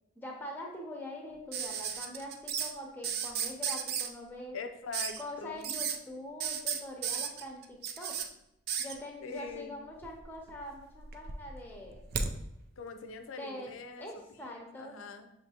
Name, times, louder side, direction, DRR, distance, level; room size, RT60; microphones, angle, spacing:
voice 1, 0.2-4.6 5.2-8.2 8.8-12.0 13.3-15.0, left 1 dB, 10° left, 0 dB, 0.6 m, -44 dB
sound 1, 1.5-2.7 3.0-4.1 4.9-5.2 5.6-6.0 6.4-8.2 8.7-9.0 10.0-10.6 10.9-12.3 13.7-13.8, right 7 dB, 45° right, 0.3 m, -34 dB
voice 2, 4.5-5.7 9.2-9.7 12.8-14.1 14.5-15.3, left 4 dB, 70° left, 7 dB, 0.4 m, -43 dB
6.5 x 2.6 x 2.8 m, 0.84 s
head